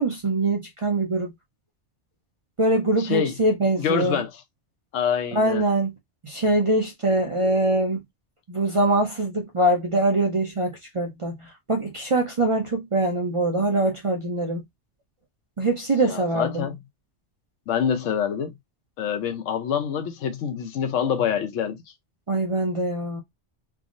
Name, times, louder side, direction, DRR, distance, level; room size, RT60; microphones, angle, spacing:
voice 1, 0.0-1.3 2.6-4.2 5.3-5.9 6.2-8.0 8.5-14.6 15.6-16.7 22.3-23.2, right 2 dB, 35° right, 0.5 m, -23 dB
voice 2, 3.0-3.3 3.8-4.3 4.9-5.6 16.0-16.8 17.7-18.5 19.0-21.8, left 8 dB, 85° left, 1.0 m, -26 dB
3.6 x 2.0 x 2.4 m
omnidirectional pair, 1.2 m